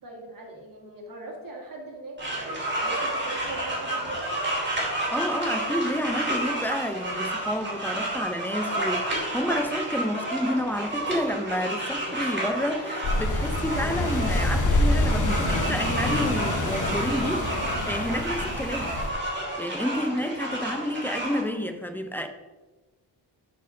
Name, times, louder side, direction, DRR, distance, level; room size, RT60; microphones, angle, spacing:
voice 1, 0.0-4.5 19.9-20.0, right 2 dB, 50° right, 1.9 m, -40 dB
sound 1, 2.2-21.4, right 1 dB, 25° right, 2.5 m, -31 dB
voice 2, 5.1-19.0 19.6-22.3, equal, 5° left, 0.6 m, -30 dB
sound 2, 13.0-19.1, left 1 dB, 40° left, 1.0 m, -26 dB
11.5 x 4.5 x 3.8 m
wide cardioid pair, 130°, 44 cm